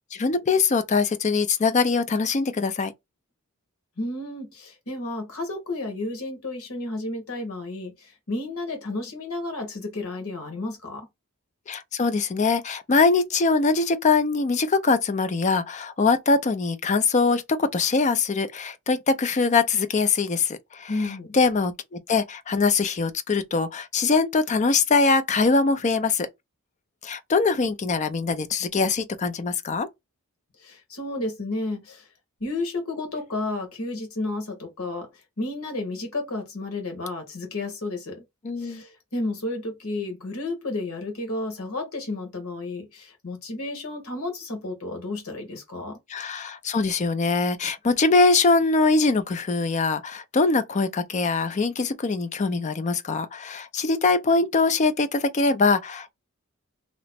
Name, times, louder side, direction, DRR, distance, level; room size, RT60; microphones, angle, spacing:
voice 1, 0.1-2.9 11.7-20.9 21.3-26.3 27.0-29.9 38.4-38.8 46.1-56.1, left 4 dB, 35° left, 0.4 m, -22 dB
voice 2, 4.0-11.1 20.9-21.4 30.6-32.1 32.4-35.1 35.4-38.2 38.6-46.0, left 2 dB, 90° left, 1.3 m, -32 dB
2.9 x 2.1 x 4.1 m
head